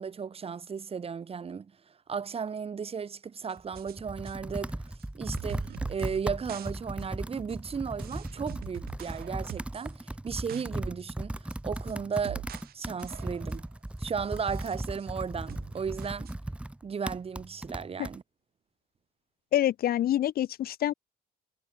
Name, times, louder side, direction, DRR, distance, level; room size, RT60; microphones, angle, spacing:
voice 1, 0.0-4.8 5.1-12.4 12.7-13.6 14.0-16.3 16.8-18.2, right 6 dB, 35° right, 5.7 m, -35 dB
sound 1, 3.5-4.0 4.3-4.4 5.0-5.1 5.4-6.2 6.5-6.7 7.0-7.1 7.5-7.6 8.0-9.9 10.2-10.7 11.0-11.1 11.5-12.7 13.0-13.7 14.3-15.1 15.5-16.3, right 12 dB, 65° right, 2.9 m, -44 dB
Computer keyboard, 3.6-18.2, right 1 dB, 5° right, 5.1 m, -37 dB
voice 2, 19.5-20.9, left 12 dB, 65° left, 3.4 m, -26 dB
cardioid pair, 110°, 17 cm